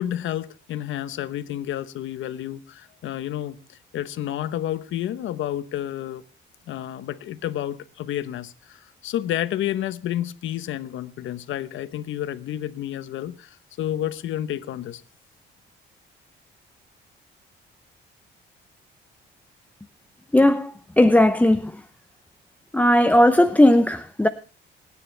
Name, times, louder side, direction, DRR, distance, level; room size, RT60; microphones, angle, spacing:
voice 1, 0.0-6.2 6.7-15.0, left 12 dB, 80° left, 1.1 m, -30 dB
voice 2, 20.3-21.8 22.7-24.3, left 1 dB, 10° left, 0.7 m, -17 dB
25.5 x 9.7 x 3.4 m
cardioid pair, 90°, 20 cm